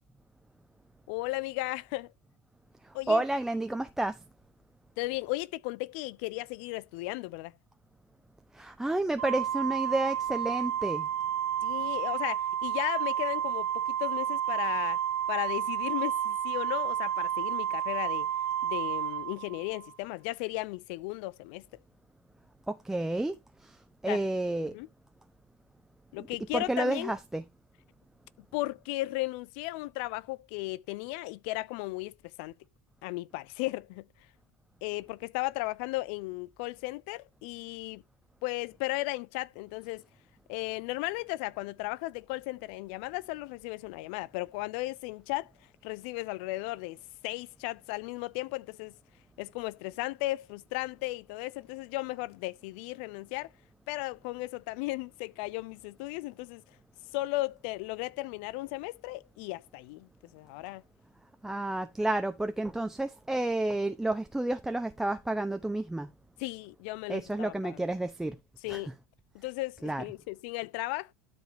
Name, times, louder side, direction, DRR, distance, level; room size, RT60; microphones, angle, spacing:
voice 1, 1.1-2.1 2.9-3.2 5.0-7.5 11.6-15.0 15.3-18.3 18.6-21.7 24.1-24.2 24.7-24.9 26.1-27.1 28.5-32.6 33.0-34.0 34.8-38.0 38.4-40.0 40.5-45.5 45.8-47.0 47.2-48.9 49.4-53.5 53.9-56.6 57.1-60.8 66.4-67.8 68.6-68.9 69.3-71.1, left 20 dB, 60° left, 0.7 m, -35 dB
voice 2, 2.8-4.2 8.5-11.1 22.7-23.4 23.6-24.7 26.2-27.4 61.4-66.1 67.1-68.4 68.7-68.9 69.8-70.1, right 2 dB, 5° right, 0.9 m, -31 dB
Organ, 9.2-19.9, right 10 dB, 75° right, 0.9 m, -31 dB
12.5 x 5.3 x 2.7 m
hypercardioid pair, 85°, 7 cm